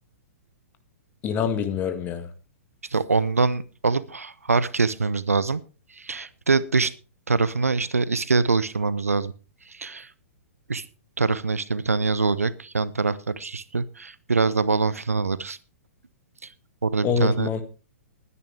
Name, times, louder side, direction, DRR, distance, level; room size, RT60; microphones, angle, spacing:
voice 1, 1.2-2.3 17.0-17.6, left 6 dB, 25° left, 9 dB, 1.8 m, -25 dB
voice 2, 2.9-5.6 5.9-6.9 7.3-9.3 9.6-10.1 10.7-10.9 11.2-15.6 16.4-16.5 16.8-17.5, right 4 dB, 75° right, 17 dB, 0.9 m, -24 dB
20.0 x 9.9 x 3.4 m, 0.34 s
figure-of-eight pair, 110°, 8 cm